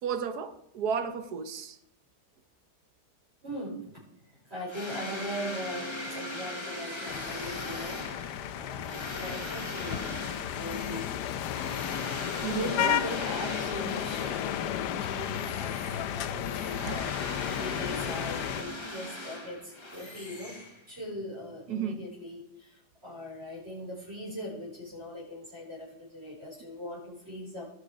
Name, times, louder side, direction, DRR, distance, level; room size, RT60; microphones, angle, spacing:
voice 1, 0.0-1.8 12.4-13.0 16.8-17.1 21.7-22.0, right 6 dB, 70° right, 11 dB, 1.4 m, -33 dB
voice 2, 3.4-4.0 4.3-11.1 11.8-27.6, equal, 40° right, -6 dB, 4.9 m, -40 dB
sound 1, 4.7-14.7 15.1-21.1, left 1 dB, 20° left, 1.3 m, -40 dB
sound 2, 7.1-18.6, left 10 dB, 85° left, 1.3 m, -33 dB
17.5 x 6.5 x 4.9 m, 0.76 s
omnidirectional pair, 1.7 m